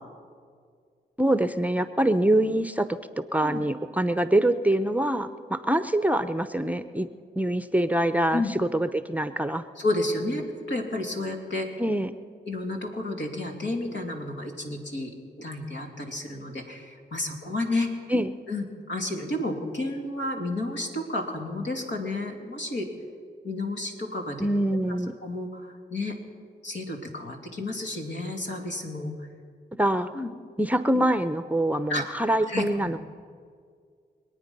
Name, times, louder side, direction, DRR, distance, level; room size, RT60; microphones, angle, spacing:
voice 1, 1.2-3.0 3.3-7.1 7.4-9.6 11.8-12.1 18.1-18.3 24.4-25.1 29.8-30.1 30.6-33.0, right 1 dB, 10° right, 11 dB, 0.7 m, -24 dB
voice 2, 9.8-11.7 12.5-17.9 18.5-22.9 23.4-24.5 25.2-26.1 26.6-29.1 30.1-30.3 31.9-32.0 32.5-33.0, left 2 dB, 70° left, 1 dB, 2.8 m, -31 dB
25.5 x 9.1 x 5.4 m, 2.1 s
supercardioid pair, 50°, 19 cm